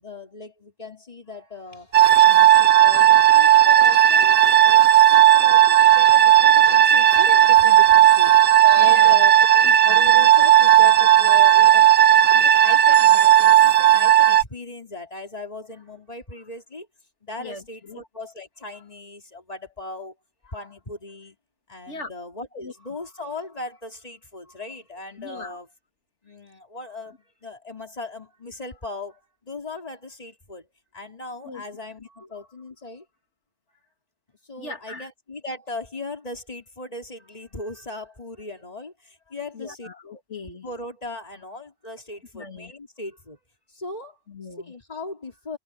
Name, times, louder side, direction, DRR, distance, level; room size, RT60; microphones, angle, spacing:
voice 1, 0.0-2.0 2.2-9.5 9.8-16.9 17.2-20.2 20.4-21.4 21.7-25.7 26.2-33.1 34.4-39.9 40.6-43.4 43.7-44.2 44.6-45.6, left 2 dB, 35° left, 3.6 m, -38 dB
sound 1, 1.6-4.8 5.2-5.3 5.6-5.7 5.9-9.9, right 1 dB, 55° left, 4.6 m, -43 dB
sound 2, 1.9-14.4, right 12 dB, 60° right, 0.9 m, -14 dB
voice 2, 8.8-9.1 9.6-10.0 17.4-18.0 21.9-22.1 22.6-22.7 25.2-25.6 31.4-31.6 32.2-32.3 34.6-35.1 39.5-40.7 42.3-42.7 44.3-44.7, left 3 dB, 85° left, 2.8 m, -39 dB
omnidirectional pair, 1.2 m